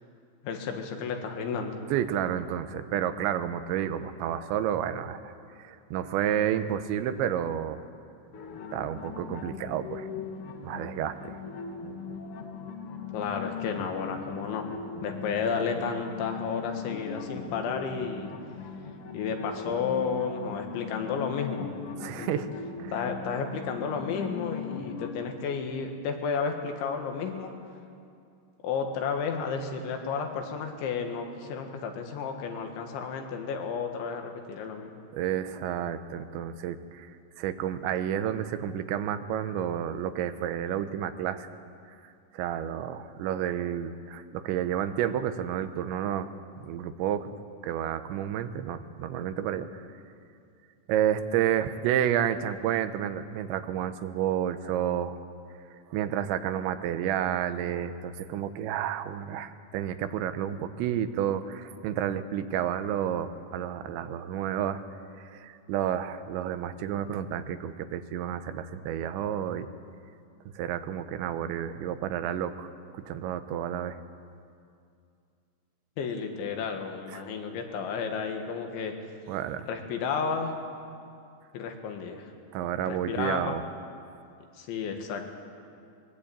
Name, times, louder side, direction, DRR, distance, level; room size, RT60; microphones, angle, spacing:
voice 1, 0.4-1.8 13.1-14.7 15.0-18.3 19.1-21.7 22.2-22.3 22.9-27.6 28.6-35.0 76.0-79.0 79.7-80.5 81.5-82.3 82.9-83.5 84.6-85.3, left 5 dB, 85° left, 4 dB, 4.1 m, -32 dB
voice 2, 1.9-7.8 8.7-10.1 10.6-11.4 22.0-22.5 35.1-41.5 41.9-46.3 46.6-47.3 47.6-49.8 50.9-55.2 55.9-64.8 65.1-69.7 70.5-72.7 72.9-74.0 77.1-77.2 79.3-79.7 82.5-83.6, right 10 dB, 85° right, 10 dB, 3.2 m, -30 dB
sound 1, 8.3-25.1, left 5 dB, 60° left, 1.4 m, -39 dB
22.0 x 20.5 x 8.7 m, 2.4 s
omnidirectional pair, 5.2 m